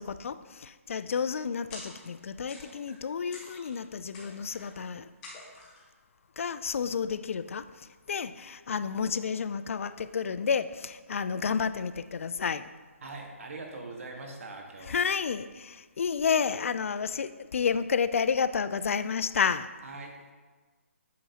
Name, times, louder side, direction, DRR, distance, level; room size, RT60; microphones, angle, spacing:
voice 1, 0.0-5.1 6.4-12.7 14.9-19.7, left 6 dB, 65° left, 13 dB, 0.3 m, -30 dB
sound 1, 1.7-2.2 2.5-3.0 3.3-3.8 4.1-4.8 5.2-5.8, left 2 dB, 15° left, 1.0 m, -47 dB
voice 2, 13.0-15.0 19.8-20.2, right 3 dB, 65° right, 2 dB, 1.4 m, -42 dB
8.5 x 6.0 x 2.8 m, 1.4 s
hypercardioid pair, 160°, 8 cm